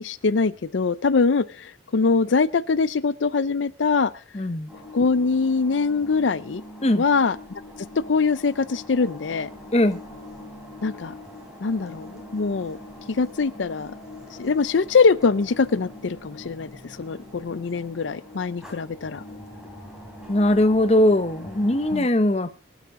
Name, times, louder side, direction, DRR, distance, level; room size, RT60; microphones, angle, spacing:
voice 1, 0.0-4.1 4.9-6.6 6.9-7.4 8.1-9.5 10.8-11.1 11.6-12.8 13.1-13.9 14.4-19.2 21.9-22.1, left 4 dB, 85° left, 0.5 m, -23 dB
voice 2, 4.3-4.7 6.8-7.0 9.7-10.0 20.3-22.5, left 1 dB, 35° left, 0.8 m, -20 dB
sound 1, 4.7-22.0, left 1 dB, 5° right, 3.4 m, -42 dB
24.5 x 8.2 x 3.7 m
head